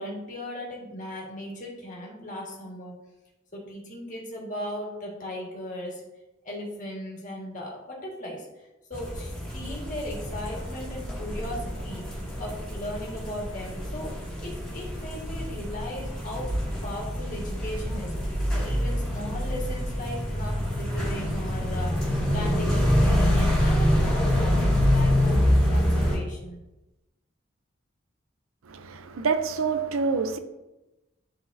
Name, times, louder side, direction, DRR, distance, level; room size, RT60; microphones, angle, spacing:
voice 1, 0.0-2.9 3.5-6.0 6.4-8.6 8.9-16.5 16.8-26.6, left 1 dB, 40° left, 1.6 m, -37 dB
sound 1, 8.9-26.2, equal, 5° left, 1.9 m, -26 dB
voice 2, 28.6-30.4, right 5 dB, 90° right, 0.5 m, -27 dB
10.5 x 4.0 x 2.6 m
head